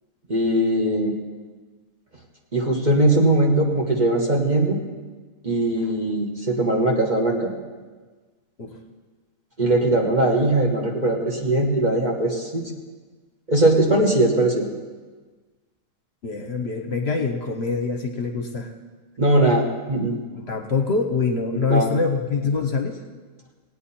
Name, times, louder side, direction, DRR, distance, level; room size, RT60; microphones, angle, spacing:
voice 1, 0.3-1.1 2.5-4.8 5.4-7.5 9.6-12.7 13.5-14.7 19.2-20.2 21.5-21.9, right 1 dB, 35° right, 0 dB, 1.4 m, -20 dB
voice 2, 16.2-18.7 20.3-23.0, left 4 dB, 55° left, 5 dB, 1.1 m, -24 dB
18.5 x 8.8 x 4.3 m, 1.4 s
omnidirectional pair, 1.4 m